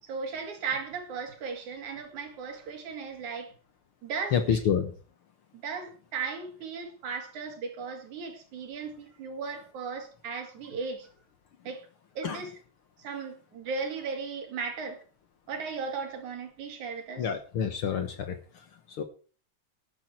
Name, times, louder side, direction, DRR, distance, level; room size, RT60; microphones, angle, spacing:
voice 1, 0.0-3.5 4.0-4.6 5.5-11.1 11.6-11.9 12.2-12.5 13.0-15.0 15.5-17.3, right 5 dB, 80° right, 3.8 m, -36 dB
voice 2, 4.3-5.0 12.2-12.4 17.2-19.0, left 7 dB, 60° left, 1.7 m, -29 dB
13.0 x 10.5 x 4.4 m
omnidirectional pair, 3.3 m